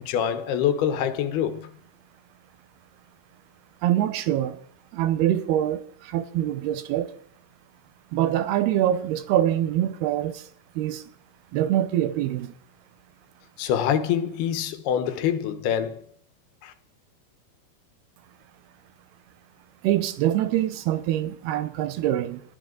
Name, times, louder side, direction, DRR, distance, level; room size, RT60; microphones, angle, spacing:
voice 1, 0.0-1.7 13.6-16.0 16.6-16.7, left 9 dB, 80° left, 3.1 m, -25 dB
voice 2, 3.8-4.6 4.9-7.1 8.1-10.5 10.8-11.0 11.5-12.5 19.8-22.4, right 12 dB, 90° right, 3.0 m, -24 dB
20.0 x 13.0 x 3.9 m
omnidirectional pair, 4.5 m